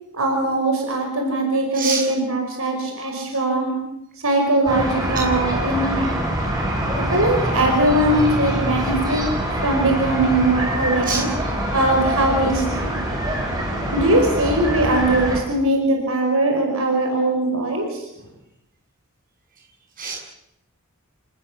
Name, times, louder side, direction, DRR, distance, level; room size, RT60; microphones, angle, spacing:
voice 1, 0.1-3.7 4.2-6.2 6.9-9.2 9.6-11.3 11.7-13.0 13.9-18.0, right 1 dB, 75° right, 2 dB, 5.4 m, -21 dB
voice 2, 1.7-2.0 5.1-5.2 11.0-11.2 13.8-13.9 20.0-20.2, right 5 dB, 40° right, 0 dB, 7.7 m, -26 dB
sound 1, 4.7-15.4, right 1 dB, 15° right, 6.2 m, -24 dB
27.5 x 19.0 x 7.2 m, 0.81 s
head